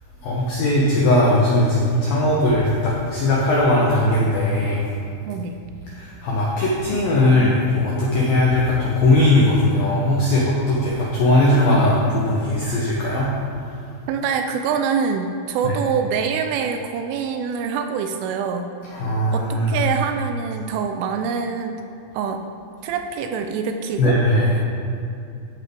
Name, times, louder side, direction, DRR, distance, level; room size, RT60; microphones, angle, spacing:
voice 1, 0.2-4.8 5.9-13.3 15.6-15.7 18.9-19.8 24.0-24.5, left 1 dB, 80° left, -4 dB, 2.1 m, -19 dB
voice 2, 5.3-5.6 14.1-18.7 19.3-21.8 22.1-22.4 22.8-24.2, right 6 dB, 85° right, 6 dB, 2.9 m, -25 dB
14.0 x 8.5 x 3.6 m, 2.6 s
omnidirectional pair, 5.9 m